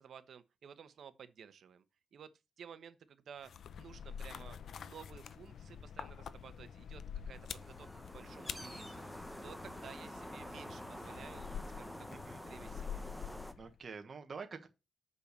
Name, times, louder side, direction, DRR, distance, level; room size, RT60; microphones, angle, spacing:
voice 1, 0.0-1.8 2.1-3.5 3.8-12.0 12.4-13.0, right 7 dB, 75° right, 1.0 m, -54 dB
sound 1, 3.4-13.8, left 7 dB, 75° left, 0.6 m, -47 dB
sound 2, 7.3-13.5, equal, ahead, 1.0 m, -48 dB
voice 2, 12.1-12.4 13.6-14.7, right 5 dB, 45° right, 1.3 m, -47 dB
6.7 x 5.6 x 6.7 m
cardioid pair, 105°, 0 cm